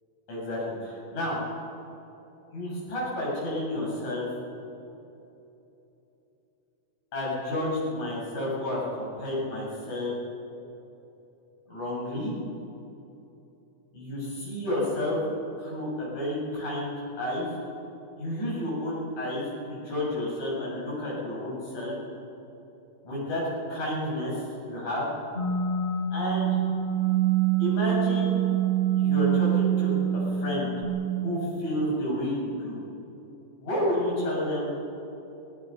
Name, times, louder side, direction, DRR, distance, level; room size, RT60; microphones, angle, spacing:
voice 1, 0.3-1.4 2.5-4.3 7.1-10.1 11.7-12.3 13.9-15.2 15.6-17.5 18.2-22.0 23.0-23.4 23.7-24.3 24.7-25.1 26.1-26.6 27.6-28.5 29.0-29.9 30.3-30.7 31.2-32.8 33.6-34.8, left 1 dB, 55° left, -6 dB, 8.9 m, -30 dB
sound 1, 25.3-30.8, right 9 dB, 10° right, 3.2 m, -25 dB
25.0 x 22.5 x 5.7 m, 3.0 s
omnidirectional pair, 4.0 m